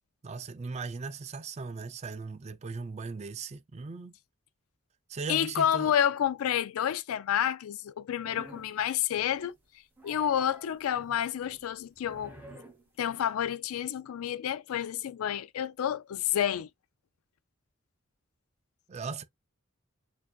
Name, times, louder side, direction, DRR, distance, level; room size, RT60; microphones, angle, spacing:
voice 1, 0.2-4.1 5.1-5.9 18.9-19.2, right 4 dB, 30° right, 0.4 m, -38 dB
voice 2, 5.3-9.5 10.0-12.4 13.0-16.7, left 9 dB, 85° left, 0.3 m, -29 dB
sound 1, 8.2-8.8 9.2-9.6 10.0-13.2, right 1 dB, 10° right, 0.8 m, -51 dB
4.4 x 2.6 x 2.3 m
head